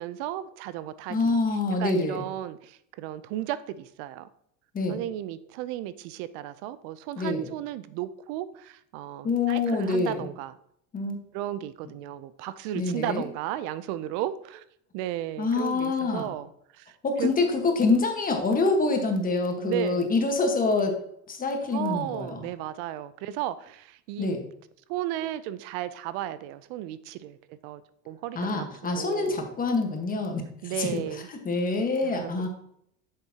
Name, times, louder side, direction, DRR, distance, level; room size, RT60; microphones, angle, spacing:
voice 1, 0.0-1.4 1.8-4.3 4.9-10.5 11.3-14.6 14.9-16.5 16.7-17.3 19.6-20.1 21.7-24.3 24.9-28.7 29.0-29.5 30.6-31.3 32.0-32.5, right 13 dB, 80° right, 15 dB, 0.5 m, -34 dB
voice 2, 1.1-2.2 4.7-5.0 7.2-7.5 9.2-10.3 10.9-11.2 12.7-13.2 15.4-16.3 17.0-20.9 21.3-22.4 24.2-24.5 28.3-31.0 31.3-32.5, left 3 dB, 25° left, 4 dB, 1.3 m, -26 dB
8.1 x 6.7 x 2.8 m, 0.71 s
cardioid pair, 125°, 32 cm